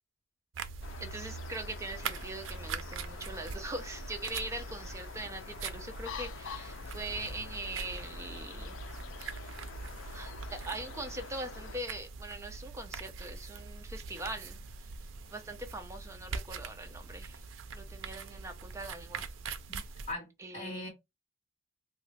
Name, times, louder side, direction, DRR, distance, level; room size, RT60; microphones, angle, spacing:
Nail Polish, 0.5-20.1, right 4 dB, 85° right, 0.4 m, -43 dB
sound 1, 0.8-11.8, left 6 dB, 85° left, 0.4 m, -47 dB
voice 1, 1.0-8.8 10.1-14.6 15.3-17.4 17.7-19.2 20.4-20.9, right 2 dB, 15° right, 0.5 m, -42 dB
voice 2, 19.7-20.3 20.5-20.9, left 2 dB, 35° left, 1.3 m, -40 dB
3.0 x 2.4 x 3.2 m
head